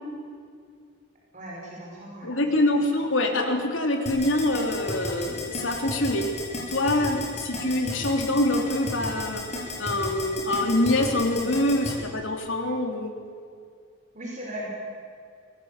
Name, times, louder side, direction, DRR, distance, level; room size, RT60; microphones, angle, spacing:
voice 1, 1.3-2.3 2.7-2.8 14.1-14.7, equal, 35° right, -3 dB, 5.5 m, -38 dB
voice 2, 2.2-6.3 6.7-9.4 9.8-13.1, left 1 dB, 70° left, 4 dB, 3.3 m, -25 dB
Keyboard (musical), 4.1-11.9, left 2 dB, 35° left, 6.7 m, -32 dB
24.5 x 18.5 x 8.4 m, 2.3 s
head